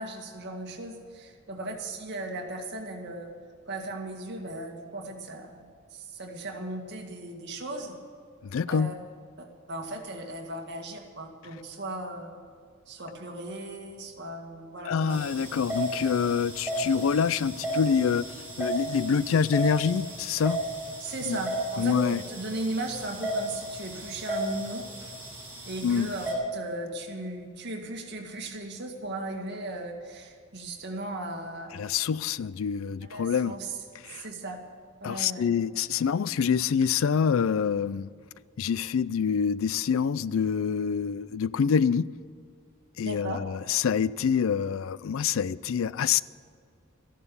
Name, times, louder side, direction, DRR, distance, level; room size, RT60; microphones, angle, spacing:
voice 1, 0.0-3.3 3.7-8.0 8.7-8.9 9.4-12.3 12.9-15.2 21.0-24.8 25.6-31.9 33.0-33.8 34.1-34.6 35.0-35.4 43.0-43.4, right 2 dB, 55° right, 2 dB, 2.0 m, -37 dB
voice 2, 8.4-8.9 14.8-18.3 18.6-20.6 21.3-21.4 21.8-22.2 25.8-26.1 31.8-33.5 34.0-34.2 35.0-38.1 38.6-42.1 43.0-46.2, left 6 dB, 80° left, 19 dB, 0.4 m, -26 dB
sound 1, 15.1-26.3, right 1 dB, 10° right, 4.9 m, -35 dB
14.0 x 11.0 x 7.0 m, 2.2 s
head